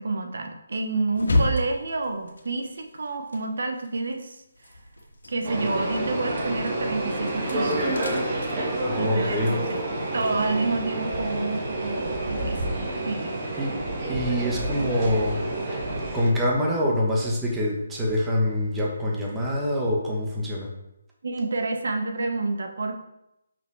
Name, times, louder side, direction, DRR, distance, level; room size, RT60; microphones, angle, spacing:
voice 1, 0.0-4.4 5.3-8.0 9.0-9.8 10.1-12.6 13.0-13.3 21.2-23.0, right 3 dB, 70° right, 5 dB, 1.1 m, -29 dB
sound 1, 1.2-4.1 4.4-10.8, left 1 dB, 80° left, 1.7 m, -33 dB
sound 2, 5.4-16.3, right 1 dB, 30° right, 1.7 m, -29 dB
voice 2, 8.9-9.6 13.6-13.7 14.1-15.4 16.1-20.7, left 1 dB, 10° right, -3 dB, 1.2 m, -25 dB
5.8 x 5.6 x 4.7 m, 0.86 s
hypercardioid pair, 165°, 0 cm